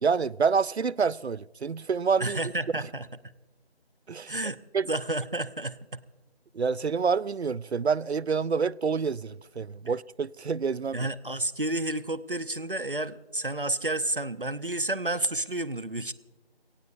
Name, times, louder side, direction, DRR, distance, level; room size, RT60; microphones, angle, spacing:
voice 1, 0.0-2.4 4.1-4.4 4.7-4.9 6.5-11.1, right 5 dB, 90° right, 0.5 m, -27 dB
voice 2, 2.2-3.1 4.3-4.6 4.9-6.0 10.9-16.1, right 2 dB, 55° right, 0.8 m, -30 dB
29.5 x 18.0 x 2.6 m
figure-of-eight pair, 180°, 32 cm